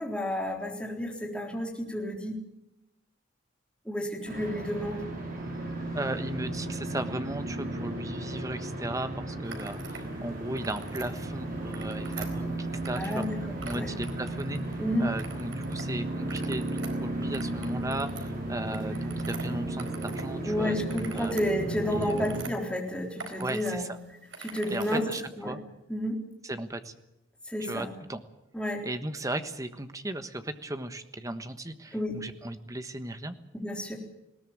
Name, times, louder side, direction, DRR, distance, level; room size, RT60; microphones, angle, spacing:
voice 1, 0.0-2.4 3.9-5.0 12.9-13.4 13.7-13.9 14.8-15.1 20.5-23.9 24.4-25.0 25.4-25.6 25.9-26.2 27.5-27.9 28.5-28.8 31.9-32.2 33.5-34.0, equal, 5° left, 0 dB, 3.8 m, -31 dB
sound 1, 4.2-22.4, right 1 dB, 45° right, 6.1 m, -34 dB
voice 2, 5.9-13.2 13.6-20.8 21.1-21.3 21.9-22.2 23.4-24.0 24.7-25.6 26.4-26.9 27.6-28.2 28.8-33.4, right 1 dB, 15° right, 9 dB, 1.3 m, -36 dB
sound 2, 9.5-10.1 10.4-11.1 11.6-13.3 13.6-14.8 15.2-15.8 16.2-20.3 20.6-22.5 23.0-23.7 24.0-25.2, right 4 dB, 75° right, 4.2 m, -44 dB
20.0 x 18.0 x 8.8 m, 0.90 s
head